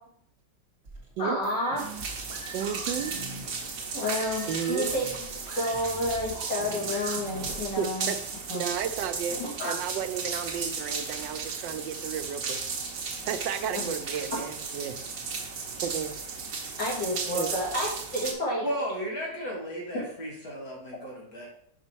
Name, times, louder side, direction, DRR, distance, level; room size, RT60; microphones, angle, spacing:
sound 1, 0.8-7.8, right 1 dB, 35° right, 1.9 m, -43 dB
voice 1, 1.2-1.8 3.9-5.1 5.5-8.1 8.5-8.6 9.4-9.7 13.7-13.9 16.8-18.6, left 1 dB, 75° left, -5 dB, 3.1 m, -30 dB
sound 2, 1.8-18.3, right 5 dB, 55° right, 1.3 m, -35 dB
voice 2, 2.5-3.2 4.5-4.9 7.8-8.2 8.5-12.6 13.3-14.9 15.8-16.1 17.3-17.5, right 8 dB, 85° right, 9 dB, 1.3 m, -33 dB
voice 3, 18.6-21.5, equal, 55° left, -4 dB, 2.6 m, -34 dB
5.8 x 5.3 x 4.5 m, 0.70 s
omnidirectional pair, 1.9 m